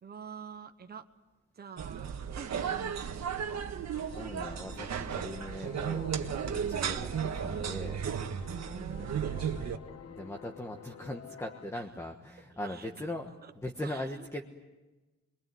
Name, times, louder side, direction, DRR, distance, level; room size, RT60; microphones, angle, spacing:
voice 1, 0.0-1.0 1.5-3.5 8.4-9.5 11.7-11.8 12.6-12.9 13.4-13.5 13.8-14.4, right 6 dB, 35° right, 7 dB, 1.1 m, -47 dB
sound 1, 1.8-9.8, right 8 dB, 65° right, 1.7 m, -34 dB
sound 2, 3.9-11.7, left 8 dB, 55° left, 1.2 m, -50 dB
voice 2, 4.1-6.1 6.7-8.0 9.0-9.1 10.1-14.4, left 1 dB, 10° left, 3 dB, 1.4 m, -40 dB
26.5 x 22.5 x 9.3 m, 1.1 s
wide cardioid pair, 170°, 29 cm